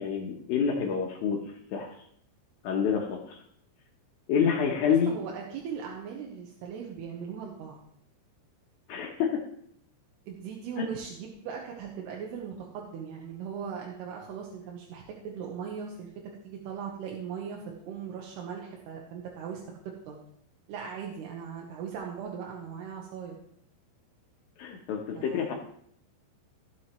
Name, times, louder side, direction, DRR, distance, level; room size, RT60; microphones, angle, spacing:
voice 1, 0.0-1.4 1.7-2.0 2.6-3.4 4.3-5.1 8.9-9.4 10.8-10.9 24.6-25.5, left 7 dB, 85° left, 0 dB, 2.0 m, -28 dB
voice 2, 5.1-7.8 10.3-16.1 16.4-19.6 20.1-20.2 20.7-23.4 25.1-25.5, right 7 dB, 75° right, -1 dB, 2.8 m, -39 dB
14.5 x 7.5 x 3.1 m, 0.68 s
omnidirectional pair, 5.4 m